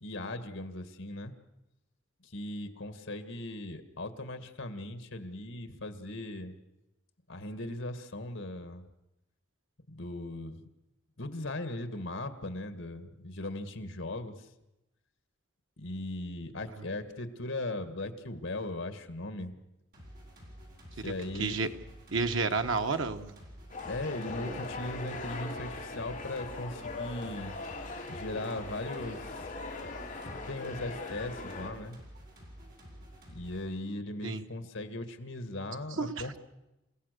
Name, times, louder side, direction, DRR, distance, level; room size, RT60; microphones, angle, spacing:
voice 1, 0.0-1.3 2.2-6.6 7.3-8.8 9.9-10.6 11.2-14.5 15.8-19.6 21.0-21.6 23.9-27.5 28.1-29.5 30.2-32.0 33.3-36.4, left 1 dB, 70° left, 9 dB, 1.9 m, -38 dB
sound 1, 19.9-33.6, equal, 45° right, 7.9 m, -50 dB
voice 2, 22.1-23.3 24.4-24.5 34.2-34.4 36.0-36.2, right 4 dB, 75° right, 7 dB, 1.3 m, -30 dB
sound 2, 23.7-31.7, left 3 dB, 40° left, 4.0 m, -40 dB
29.0 x 17.0 x 6.8 m, 0.95 s
head